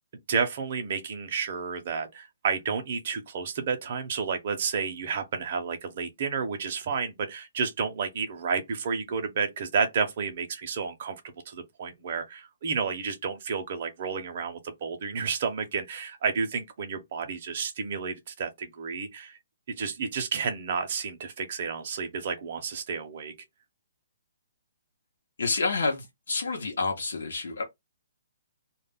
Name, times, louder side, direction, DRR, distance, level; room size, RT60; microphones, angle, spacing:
voice 1, 0.3-19.4 19.7-23.3, right 5 dB, 35° right, 0.5 m, -31 dB
voice 2, 25.4-27.6, left 3 dB, 75° left, 0.7 m, -29 dB
2.1 x 2.0 x 3.4 m
hypercardioid pair, 180°, 0 cm